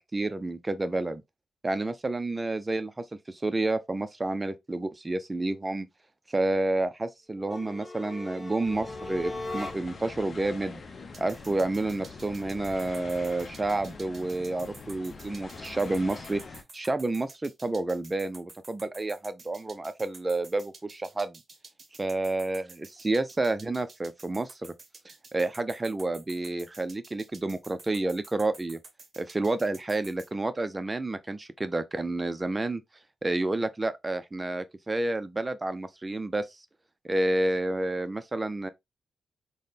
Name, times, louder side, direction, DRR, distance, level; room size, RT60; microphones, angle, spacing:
voice 1, 0.1-1.2 1.6-5.9 6.3-10.8 11.2-21.4 22.0-24.7 25.3-28.8 29.2-32.8 33.2-36.6 37.0-38.7, right 2 dB, 30° right, 0.6 m, -30 dB
sound 1, 7.4-10.1, left 2 dB, 10° left, 1.8 m, -39 dB
sound 2, 8.6-16.6, left 4 dB, 50° left, 0.6 m, -44 dB
sound 3, 11.1-30.3, right 3 dB, 50° right, 0.9 m, -50 dB
3.9 x 2.2 x 3.3 m
hypercardioid pair, 40°, 0 cm